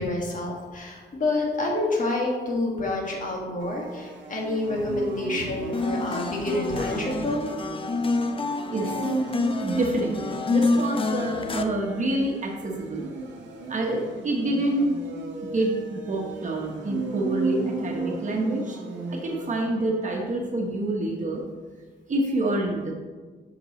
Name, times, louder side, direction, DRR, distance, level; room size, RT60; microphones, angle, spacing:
voice 1, 0.0-7.5, left 2 dB, 45° left, -2 dB, 2.0 m, -28 dB
sound 1, 3.6-20.2, right 3 dB, 90° right, 0.9 m, -35 dB
sound 2, 5.7-11.6, left 3 dB, 30° left, 0.6 m, -27 dB
voice 2, 9.6-13.1 13.7-14.9 15.5-18.8 19.1-21.4 22.1-22.9, right 1 dB, 45° right, 0 dB, 1.2 m, -27 dB
8.0 x 6.0 x 3.2 m, 1.4 s
cardioid pair, 75°, 18 cm